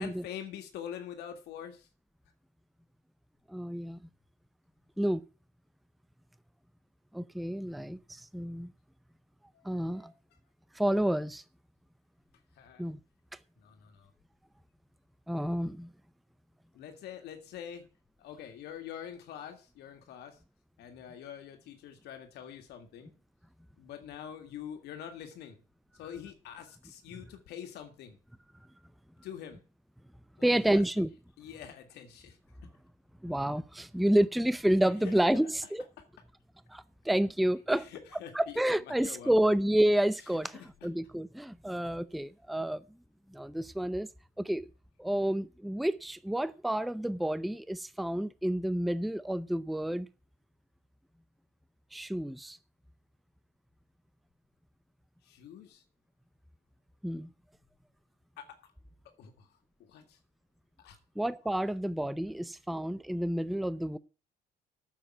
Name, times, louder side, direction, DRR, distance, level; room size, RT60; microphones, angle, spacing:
voice 1, 0.0-1.9 9.5-10.1 12.6-12.9 13.6-14.1 16.7-17.8 18.2-20.4 20.8-23.1 23.8-25.6 26.0-28.2 29.2-29.6 30.4-31.1 31.4-32.4 34.9-35.7 36.0-36.1 37.7-39.6 40.1-40.9 55.2-55.8 58.4-58.6 59.2-60.2 60.8-61.0, left 9 dB, 80° left, 1.9 m, -46 dB
voice 2, 3.5-4.0 5.0-5.3 7.1-8.7 9.6-10.1 10.7-11.4 12.8-13.0 15.3-15.9 30.4-31.1 33.2-35.8 36.7-37.9 38.3-40.5 40.8-42.8 43.3-44.1 44.4-44.7 45.0-50.1 51.9-52.6 57.0-57.3 61.2-64.0, right 1 dB, ahead, 0.5 m, -29 dB
8.9 x 7.4 x 8.8 m
cardioid pair, 110°, 17 cm